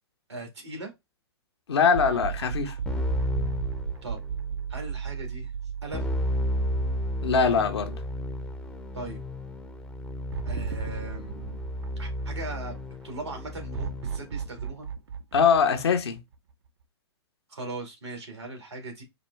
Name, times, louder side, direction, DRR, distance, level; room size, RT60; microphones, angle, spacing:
voice 1, 0.3-0.9 4.0-4.2 4.7-5.5 5.8-6.1 8.9-9.2 10.5-11.6 12.0-12.8 13.0-14.9 17.5-19.0, right 2 dB, 90° right, 2.0 m, -39 dB
voice 2, 1.7-2.7 7.2-8.0 15.3-16.2, left 6 dB, 75° left, 0.9 m, -22 dB
sound 1, 1.9-8.3 8.6-8.7 10.3-12.8 13.7-16.5, right 7 dB, 70° right, 0.6 m, -36 dB
Keyboard (musical), 2.9-4.5 5.9-14.3, left 1 dB, 5° left, 0.5 m, -32 dB
5.0 x 2.2 x 3.1 m
hypercardioid pair, 115°, 14 cm